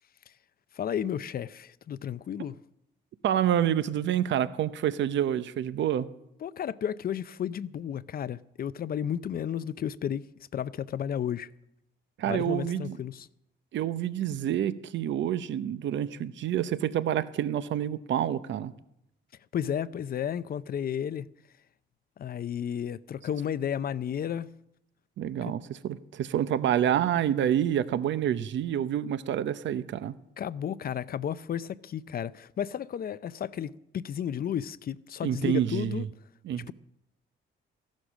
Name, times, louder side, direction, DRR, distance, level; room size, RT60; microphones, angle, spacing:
voice 1, 0.7-2.6 6.4-11.5 12.3-13.3 19.5-21.3 22.2-24.5 25.4-25.5 30.4-36.1 36.5-36.7, left 9 dB, 50° left, 0.6 m, -33 dB
voice 2, 3.2-6.1 12.2-13.0 13.7-18.7 25.2-30.1 35.2-36.1 36.4-36.7, right 10 dB, 70° right, 0.8 m, -28 dB
14.5 x 11.5 x 6.3 m
cardioid pair, 90°, 20 cm